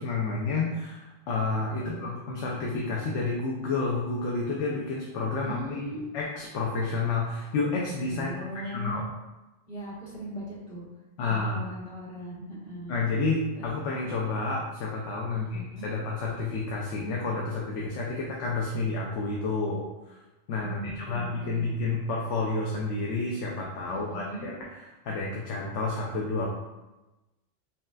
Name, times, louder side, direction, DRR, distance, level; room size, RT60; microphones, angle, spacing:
voice 1, 0.0-5.8 6.1-8.3 8.6-9.1 11.2-11.7 12.9-20.2 20.5-20.8 21.1-26.5, left 3 dB, 80° left, -3 dB, 0.9 m, -30 dB
voice 2, 5.4-6.0 8.1-9.0 9.7-10.8 11.2-13.0 13.5-13.7 15.3-15.9 20.6-21.8 23.9-24.5, right 1 dB, 55° left, -7 dB, 1.5 m, -39 dB
5.5 x 2.3 x 2.3 m, 1.0 s
omnidirectional pair, 1.2 m